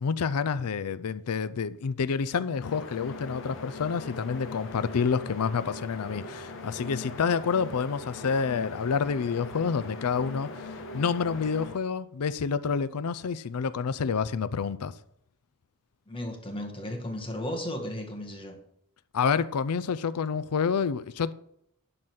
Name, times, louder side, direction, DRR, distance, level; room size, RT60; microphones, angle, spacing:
voice 1, 0.0-10.5 10.9-14.9 19.1-21.3, left 6 dB, 80° left, 0.5 m, -28 dB
sound 1, 2.5-11.8, left 3 dB, 60° left, 1.2 m, -40 dB
voice 2, 16.1-18.6, left 1 dB, 25° left, 1.6 m, -35 dB
11.5 x 3.9 x 7.9 m
head